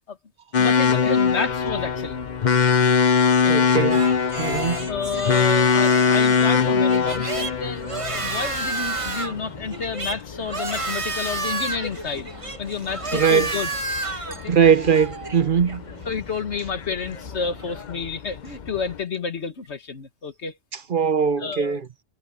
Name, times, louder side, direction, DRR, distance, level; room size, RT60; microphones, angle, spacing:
sound 1, 0.5-19.0, left 6 dB, 45° left, 0.9 m, -23 dB
voice 1, 0.6-2.3 3.3-3.6 4.6-7.9 8.1-12.3 12.6-13.7 14.2-14.5 16.1-20.6 21.4-21.8, left 5 dB, 80° left, 1.9 m, -30 dB
voice 2, 3.5-4.1 4.4-4.9 13.1-13.5 14.5-15.8 20.9-21.9, right 7 dB, 50° right, 1.0 m, -20 dB
sound 2, 3.9-17.8, right 2 dB, 30° right, 1.5 m, -32 dB
omnidirectional pair, 1.1 m